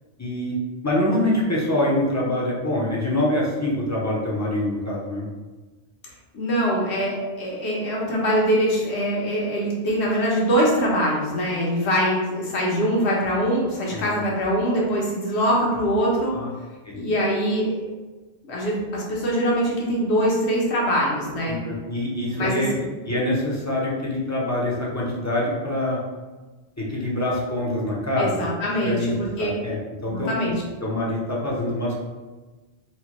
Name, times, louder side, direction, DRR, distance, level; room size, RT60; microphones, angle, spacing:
voice 1, 0.2-0.6 0.8-5.3 13.9-14.1 16.3-16.5 16.8-17.0 21.5-26.0 26.8-28.4 28.8-29.1 29.4-30.3 30.8-32.0, left 1 dB, 20° left, -5 dB, 0.5 m, -25 dB
voice 2, 6.3-16.3 16.9-17.9 18.4-21.6 22.4-22.6 28.2-29.5 30.1-30.5, equal, 70° left, -3 dB, 1.2 m, -23 dB
4.1 x 2.2 x 2.9 m, 1.3 s
omnidirectional pair, 1.2 m